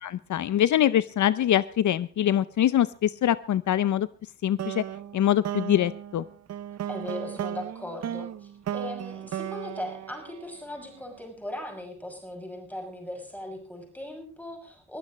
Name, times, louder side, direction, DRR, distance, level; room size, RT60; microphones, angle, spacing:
voice 1, 0.0-4.1 4.4-4.8 5.1-6.2, left 11 dB, 65° left, 16 dB, 0.6 m, -24 dB
sound 1, 4.6-11.0, right 10 dB, 55° right, 0.6 m, -36 dB
voice 2, 6.8-15.0, left 1 dB, 5° left, 2 dB, 6.4 m, -38 dB
21.5 x 15.0 x 3.1 m, 0.42 s
wide cardioid pair, 125°, 31 cm